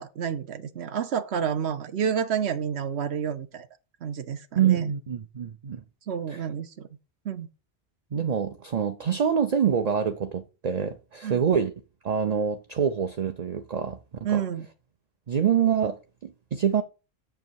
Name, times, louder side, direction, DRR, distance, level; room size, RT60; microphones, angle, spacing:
voice 1, 0.0-3.7 4.0-4.9 6.1-6.9 7.2-7.5 11.2-11.4 14.2-14.7, right 8 dB, 85° right, 1.2 m, -29 dB
voice 2, 4.6-5.8 6.3-6.4 8.1-11.7 12.0-14.0 14.3-14.4 15.3-16.8, right 8 dB, 45° right, 0.7 m, -26 dB
8.0 x 6.8 x 4.7 m
omnidirectional pair, 1.1 m